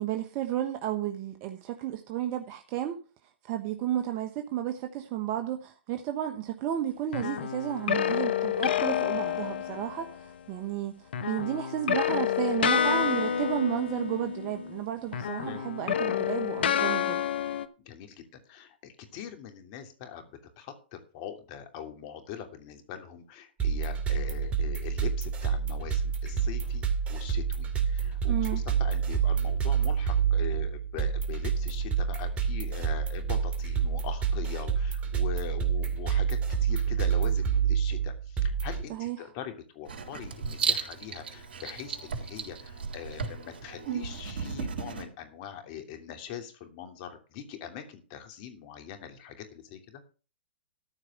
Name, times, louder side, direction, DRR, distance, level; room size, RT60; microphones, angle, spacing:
voice 1, 0.0-3.0 3.4-17.2 28.3-28.6 38.9-39.3, right 12 dB, 40° right, 6 dB, 1.2 m, -32 dB
sound 1, 7.1-10.2 11.1-14.8 15.1-17.7, left 8 dB, 70° left, 1.1 m, -29 dB
voice 2, 17.8-20.2 20.6-50.0, left 9 dB, 45° left, 6 dB, 2.9 m, -42 dB
sound 2, 23.6-38.8, right 7 dB, 20° right, 2.4 m, -28 dB
Writing, 39.9-45.0, right 5 dB, 70° right, 3.7 m, -34 dB
14.0 x 4.8 x 7.6 m, 0.36 s
hypercardioid pair, 125°, 6 cm